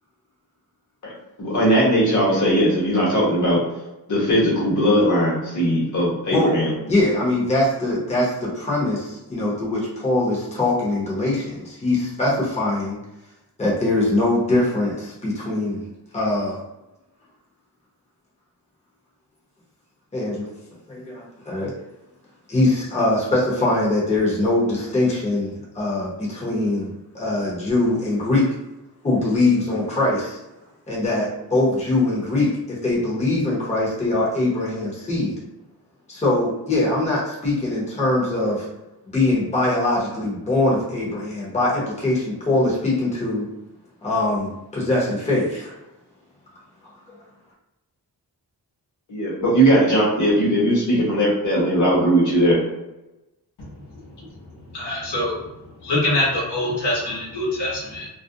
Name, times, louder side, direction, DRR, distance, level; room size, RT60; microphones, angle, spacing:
voice 1, 1.4-3.6 4.1-6.7 49.1-52.6, equal, 45° left, -5 dB, 1.0 m, -19 dB
voice 2, 6.9-13.0 13.6-15.8 16.1-16.6 20.1-20.5 20.9-21.7 22.5-26.9 27.1-28.5 29.0-30.4 30.9-35.4 36.1-38.7 39.1-43.5 44.0-45.7, left 2 dB, 15° left, -6 dB, 0.7 m, -22 dB
voice 3, 54.7-55.4 55.8-58.1, left 1 dB, 80° left, -5 dB, 1.0 m, -24 dB
2.4 x 2.1 x 2.6 m, 0.97 s
wide cardioid pair, 120°, 41 cm